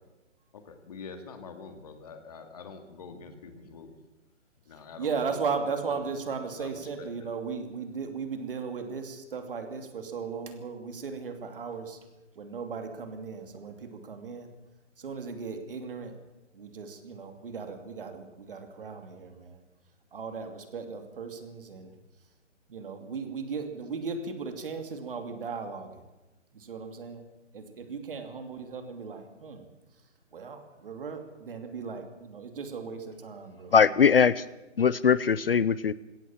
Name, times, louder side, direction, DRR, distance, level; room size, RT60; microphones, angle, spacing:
voice 1, 0.5-4.0 4.7-5.6 5.9-6.2 6.5-7.3, left 5 dB, 30° left, 7 dB, 2.2 m, -46 dB
voice 2, 5.0-12.0 12.3-14.5 15.0-16.1 16.5-19.6 20.1-21.9 22.7-25.9 26.5-27.2 27.5-29.6 30.3-33.7, right 5 dB, 45° right, 6 dB, 2.8 m, -36 dB
voice 3, 33.7-34.4 34.8-35.9, left 6 dB, 50° left, 18 dB, 0.6 m, -21 dB
21.5 x 17.5 x 7.2 m, 1.1 s
hypercardioid pair, 170°, 37 cm